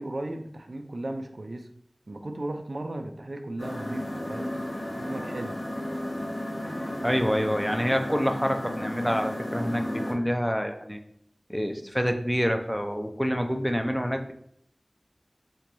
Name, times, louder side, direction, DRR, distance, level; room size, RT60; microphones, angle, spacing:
voice 1, 0.0-1.7 2.1-4.5 4.9-5.6, right 1 dB, 75° right, 5 dB, 0.3 m, -35 dB
sound 1, 3.6-10.1, left 1 dB, 80° left, 0.8 m, -33 dB
voice 2, 7.0-11.0 11.5-14.3, equal, 5° left, 5 dB, 0.4 m, -27 dB
2.9 x 2.2 x 3.8 m, 0.70 s
wide cardioid pair, 45°, 0 cm